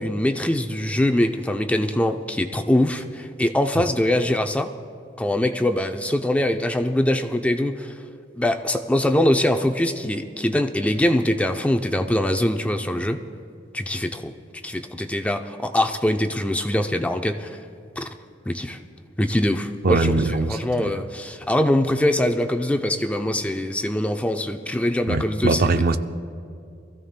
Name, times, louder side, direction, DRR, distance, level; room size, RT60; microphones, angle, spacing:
voice 1, 0.0-4.7 5.2-7.9 8.4-13.2 13.7-14.3 14.6-17.6 18.0-18.1 18.5-18.8 19.2-20.1 20.5-26.0, left 1 dB, 5° left, 0.4 m, -23 dB
voice 2, 19.8-21.0 25.1-26.0, right 3 dB, 55° right, 0.5 m, -22 dB
24.5 x 14.5 x 2.2 m
head